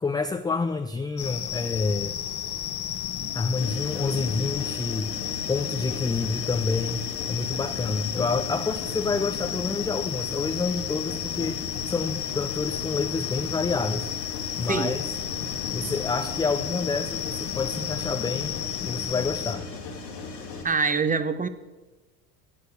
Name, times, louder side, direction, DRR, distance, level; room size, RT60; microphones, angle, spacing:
voice 1, 0.0-2.2 3.3-5.1 5.5-11.6 11.9-14.1 14.6-15.0 15.7-19.7, left 4 dB, 10° left, 8 dB, 0.4 m, -28 dB
sound 1, 1.2-19.5, left 10 dB, 45° left, 1.3 m, -33 dB
Mechanisms, 3.6-20.6, left 4 dB, 85° left, 3.0 m, -38 dB
voice 2, 14.7-15.0 20.6-21.5, right 4 dB, 15° right, 12 dB, 0.9 m, -24 dB
13.0 x 8.0 x 6.7 m, 1.2 s
hypercardioid pair, 70°, 49 cm